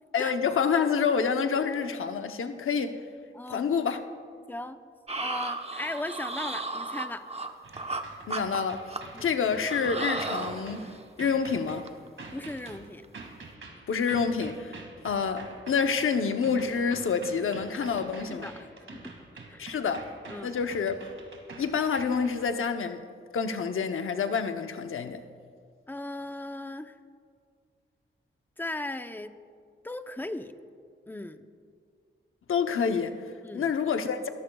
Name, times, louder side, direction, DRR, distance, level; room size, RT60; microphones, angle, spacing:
voice 1, 0.1-3.0 3.5-4.0 8.3-8.9 9.2-10.9 11.2-11.9 13.9-18.5 19.6-20.1 20.4-21.0 21.6-23.0 23.3-25.2 32.5-33.2 33.5-34.3, left 6 dB, 90° left, 7 dB, 0.8 m, -28 dB
voice 2, 3.3-3.7 4.5-4.8 5.2-7.2 9.1-9.3 12.3-13.0 18.3-18.7 18.9-19.1 19.5-19.7 20.3-20.6 25.9-27.0 28.6-29.4 29.8-30.5 31.1-31.4 33.4-33.7, left 1 dB, 10° left, 8 dB, 0.7 m, -37 dB
sound 1, 5.1-8.0 8.3-9.3 9.6-11.1 11.4-11.6 11.9-12.1 12.4-12.7 13.0-13.3, right 2 dB, 30° right, 0.9 m, -35 dB
sound 2, 7.6-22.5, right 3 dB, 75° right, 2.1 m, -47 dB
28.0 x 14.5 x 2.3 m, 2.1 s
cardioid pair, 75°, 21 cm